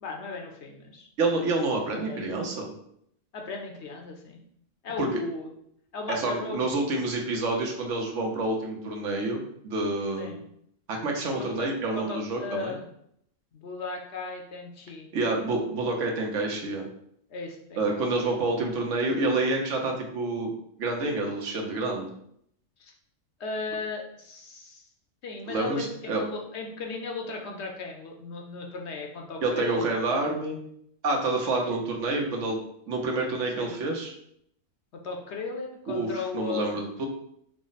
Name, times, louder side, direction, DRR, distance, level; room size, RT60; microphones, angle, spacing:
voice 1, 0.0-1.1 1.9-2.3 3.3-4.4 4.8-5.5 5.9-6.8 10.2-10.4 11.4-11.7 11.9-12.8 13.5-15.1 17.3-18.0 22.8-22.9 23.4-24.8 25.2-29.8 31.7-31.8 33.5-33.8 34.9-36.8, left 4 dB, 65° left, 1 dB, 0.9 m, -36 dB
voice 2, 1.2-2.7 5.0-5.1 6.1-10.4 10.9-12.7 15.1-16.8 17.8-20.5 20.8-22.1 25.5-26.2 29.4-30.6 31.0-32.6 32.9-34.1 35.9-37.1, right 2 dB, 70° right, 1 dB, 1.1 m, -28 dB
4.9 x 2.0 x 3.9 m, 0.70 s
omnidirectional pair, 1.4 m